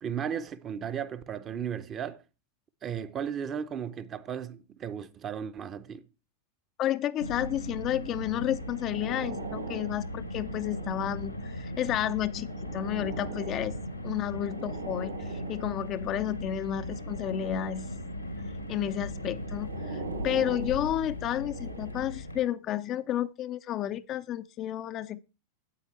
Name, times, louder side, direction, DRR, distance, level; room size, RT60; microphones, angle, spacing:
voice 1, 0.0-2.2 2.8-6.1, right 8 dB, 25° right, 0.7 m, -35 dB
voice 2, 6.8-13.7 14.0-17.9 18.7-25.2, left 11 dB, 35° left, 0.4 m, -31 dB
Car, 7.2-22.4, left 1 dB, 90° left, 1.2 m, -38 dB
sound 1, 8.2-11.3 12.0-16.2 16.9-18.0 18.9-22.2 22.9-23.1, right 4 dB, 75° right, 2.7 m, -43 dB
8.8 x 8.4 x 4.3 m
figure-of-eight pair, 90°, 0 cm